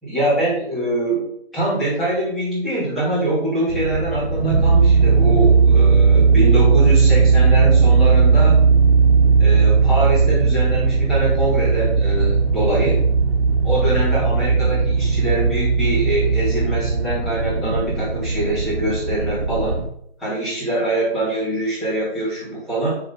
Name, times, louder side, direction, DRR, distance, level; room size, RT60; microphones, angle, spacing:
voice 1, 0.0-8.6 9.4-13.0 13.6-19.8 20.2-23.0, right 1 dB, ahead, -12 dB, 3.1 m, -24 dB
sound 1, 3.7-19.9, right 4 dB, 65° right, 2.2 m, -17 dB
9.5 x 4.8 x 5.5 m, 0.72 s
figure-of-eight pair, 155°, 33 cm